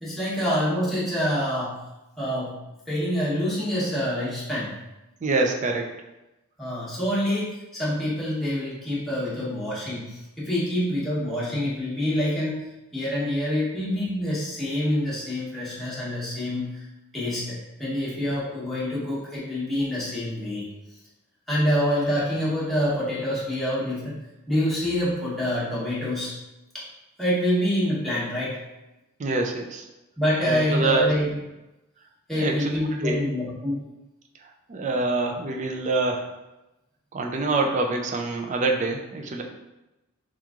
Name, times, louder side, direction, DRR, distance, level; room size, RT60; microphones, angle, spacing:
voice 1, 0.0-1.8 2.2-2.6 2.9-4.7 6.6-12.6 12.9-16.8 17.1-17.5 17.8-20.6 21.5-24.1 24.5-26.3 26.7-26.8 27.2-28.6 30.2-31.4 32.3-33.8, equal, ahead, -9 dB, 0.9 m, -26 dB
voice 2, 5.2-5.9 29.2-29.8 30.4-31.1 32.4-33.2 34.7-36.3 37.1-39.4, right 3 dB, 35° right, 2 dB, 0.4 m, -25 dB
3.5 x 3.0 x 2.4 m, 0.97 s
head